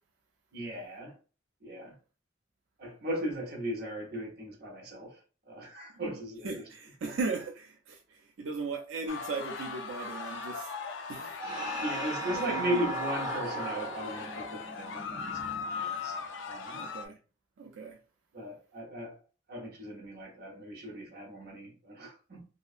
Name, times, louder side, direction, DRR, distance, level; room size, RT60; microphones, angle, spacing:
voice 1, 0.5-1.1 1.6-1.9 2.8-5.2 5.5-6.7 11.8-16.2 16.5-16.8 18.3-19.2 19.5-22.5, right 1 dB, 60° right, 0.8 m, -37 dB
voice 2, 6.4-8.0 8.4-10.7 11.1-11.4 12.2-12.8 16.7-17.2 17.6-18.0, right 3 dB, 90° right, 0.4 m, -37 dB
sound 1, 9.1-17.1, left 5 dB, 70° left, 0.4 m, -39 dB
sound 2, 11.4-16.2, right 1 dB, 20° right, 0.9 m, -37 dB
2.7 x 2.3 x 2.4 m
head